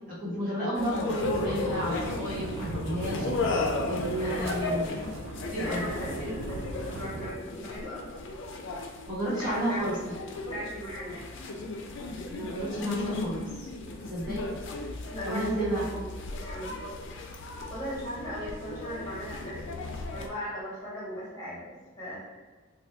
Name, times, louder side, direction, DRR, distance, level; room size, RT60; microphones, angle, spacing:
voice 1, 0.1-5.0 5.5-5.9 9.1-10.0 12.3-13.7 14.1-14.4 15.2-15.8, right 1 dB, 45° right, -8 dB, 1.1 m, -32 dB
sound 1, 0.8-20.3, left 3 dB, 65° left, 0.4 m, -35 dB
sound 2, 1.2-7.3, right 2 dB, 85° right, 0.4 m, -38 dB
voice 2, 4.1-4.5 5.6-8.1 9.3-9.8 10.3-11.2 15.1-16.8 17.7-19.8 20.1-22.4, equal, 20° left, -10 dB, 1.4 m, -38 dB
2.9 x 2.2 x 3.4 m, 1.3 s
head